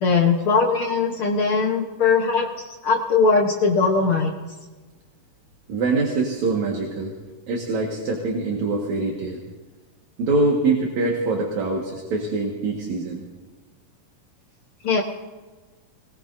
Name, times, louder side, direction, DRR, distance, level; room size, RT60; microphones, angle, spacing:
voice 1, 0.0-4.3 14.8-15.0, left 4 dB, 65° left, 1 dB, 1.4 m, -20 dB
voice 2, 5.7-7.2 7.5-9.4 10.2-13.2, right 3 dB, 60° right, -1 dB, 2.9 m, -24 dB
25.5 x 20.5 x 2.7 m, 1.3 s
omnidirectional pair, 3.8 m